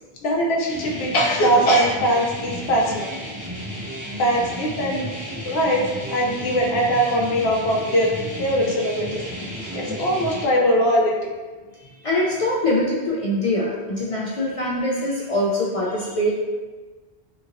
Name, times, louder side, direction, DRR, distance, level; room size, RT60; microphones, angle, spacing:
voice 1, 0.2-3.1 4.2-5.1 5.4-8.1 8.4-9.2 9.7-11.2, equal, 85° left, -1 dB, 0.9 m, -21 dB
sound 1, 0.7-10.4, equal, 10° right, 0.6 m, -33 dB
voice 2, 12.0-16.4, left 1 dB, 55° left, -6 dB, 0.4 m, -23 dB
2.9 x 2.7 x 2.5 m, 1.3 s
omnidirectional pair, 1.0 m